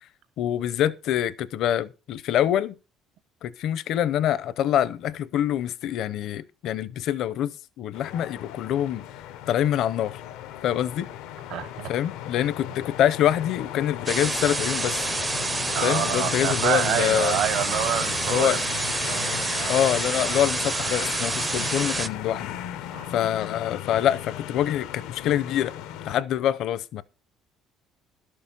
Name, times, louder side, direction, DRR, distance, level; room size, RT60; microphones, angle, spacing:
voice 1, 0.4-2.7 3.4-9.1 9.5-10.2 10.6-11.1 11.9-15.0 15.8-17.4 18.3-18.6 19.7-22.6 23.1-25.7 26.0-27.0, left 11 dB, 50° left, 0.6 m, -25 dB
sound 1, 7.9-26.2, left 11 dB, 90° left, 1.0 m, -36 dB
voice 2, 11.5-11.9 15.7-18.6 19.1-19.8 22.9-23.1, right 10 dB, 60° right, 0.8 m, -28 dB
sound 2, 14.1-22.1, right 3 dB, 15° right, 0.4 m, -28 dB
12.0 x 6.7 x 5.4 m
cardioid pair, 170°, 0 cm